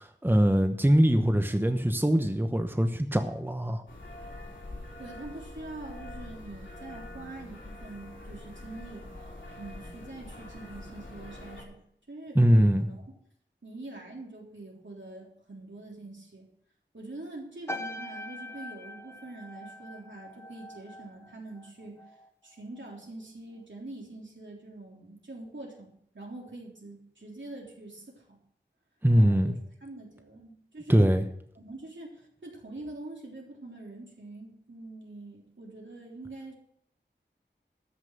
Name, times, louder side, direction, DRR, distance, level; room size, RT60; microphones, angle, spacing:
voice 1, 0.0-3.8 12.3-12.9 29.0-29.5 30.9-31.2, equal, 10° right, 6 dB, 1.0 m, -22 dB
sound 1, 3.9-11.6, left 1 dB, 90° left, 3.6 m, -44 dB
voice 2, 5.0-9.1 9.6-11.8 12.1-13.1 13.6-16.5 16.9-22.0 22.4-28.4 29.2-31.1 31.6-36.5, right 2 dB, 80° right, -2 dB, 3.6 m, -44 dB
sound 2, 17.7-22.3 22.6-23.0, left 1 dB, 15° left, 1.0 m, -42 dB
13.5 x 5.9 x 8.1 m, 0.68 s
wide cardioid pair, 50°, 19 cm